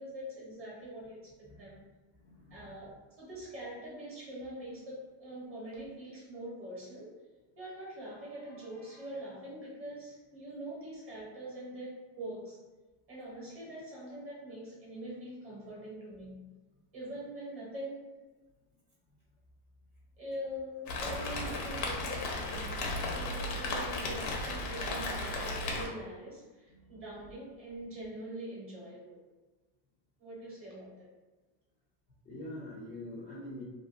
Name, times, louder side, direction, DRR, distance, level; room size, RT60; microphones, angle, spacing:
voice 1, 0.0-1.8 2.5-7.1 7.5-12.6 13.1-16.4 16.9-18.1 20.2-29.2 30.2-30.9, right 1 dB, 25° right, -5 dB, 1.0 m, -43 dB
voice 2, 2.2-2.8 26.7-27.0 32.2-33.6, left 1 dB, 20° left, -8 dB, 0.4 m, -45 dB
Rain, 20.9-25.9, left 2 dB, 90° left, 0.8 m, -35 dB
2.6 x 2.5 x 2.4 m, 1.2 s
cardioid pair, 150°, 48 cm